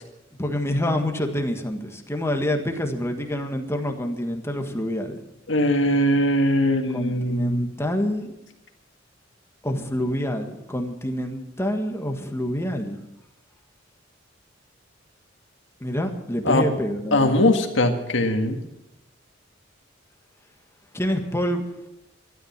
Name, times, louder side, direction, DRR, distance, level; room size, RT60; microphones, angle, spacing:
voice 1, 0.4-5.2 6.9-8.3 9.6-13.0 15.8-17.3 20.9-21.6, left 1 dB, 15° left, 4 dB, 1.5 m, -27 dB
voice 2, 5.5-7.6 16.5-16.7 17.1-18.6, left 1 dB, 70° left, 5 dB, 1.8 m, -21 dB
12.5 x 12.5 x 7.3 m, 0.91 s
head